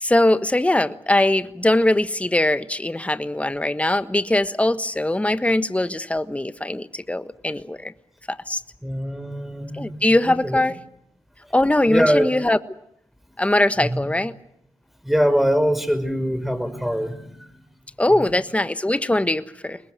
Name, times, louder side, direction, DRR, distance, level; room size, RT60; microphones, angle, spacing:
voice 1, 0.0-7.9 8.3-8.6 9.7-10.8 11.5-12.6 13.4-14.3 18.0-19.8, left 1 dB, 15° left, 12 dB, 1.4 m, -21 dB
voice 2, 8.8-10.6 11.9-12.4 13.8-14.1 15.0-17.5 18.2-18.4, equal, ahead, 11 dB, 5.5 m, -23 dB
23.0 x 20.5 x 9.3 m, 0.74 s
supercardioid pair, 40°, 10 cm